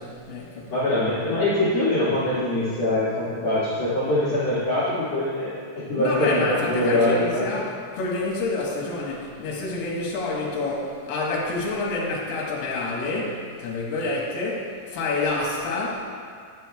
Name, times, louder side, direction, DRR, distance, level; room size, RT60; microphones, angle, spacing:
voice 1, 0.0-1.0 6.0-16.0, left 2 dB, 70° left, -4 dB, 3.0 m, -28 dB
voice 2, 0.7-7.4, left 1 dB, 50° left, -11 dB, 2.2 m, -23 dB
11.0 x 8.0 x 2.3 m, 2.1 s
omnidirectional pair, 4.9 m